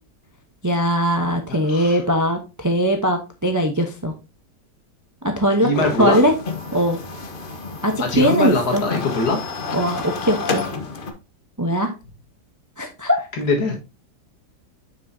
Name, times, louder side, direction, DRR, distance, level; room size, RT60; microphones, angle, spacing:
voice 1, 0.6-4.1 5.2-5.7 6.0-6.3 6.7-7.0 7.8-8.8 9.7-10.6 11.6-11.9 12.8-13.2, equal, 20° right, 4 dB, 0.5 m, -20 dB
voice 2, 1.7-2.0 5.6-6.2 8.0-9.4 13.4-13.8, left 3 dB, 65° left, 2 dB, 2.1 m, -22 dB
sound 1, 5.7-11.1, left 4 dB, 40° left, 0.8 m, -30 dB
7.2 x 6.2 x 2.7 m, 0.29 s
omnidirectional pair, 1.8 m